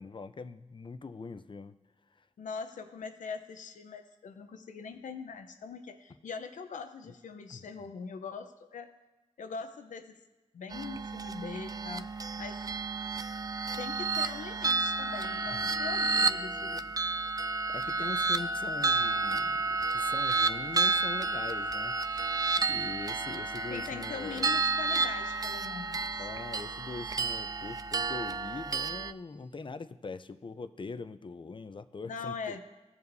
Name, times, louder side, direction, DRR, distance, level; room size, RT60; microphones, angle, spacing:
voice 1, 0.0-1.8 2.2-2.3 7.5-7.7 15.5-15.7 17.7-22.4 22.7-24.6 26.2-32.6, left 4 dB, 40° left, 11 dB, 0.6 m, -42 dB
voice 2, 2.4-8.9 9.4-10.2 10.5-12.1 12.4-12.6 13.8-16.9 23.7-26.2 32.0-32.6, left 5 dB, 90° left, 7 dB, 0.8 m, -42 dB
sound 1, 10.7-29.1, right 3 dB, 30° right, 0.4 m, -31 dB
16.5 x 7.0 x 2.7 m, 1.2 s
cardioid pair, 50°, 13 cm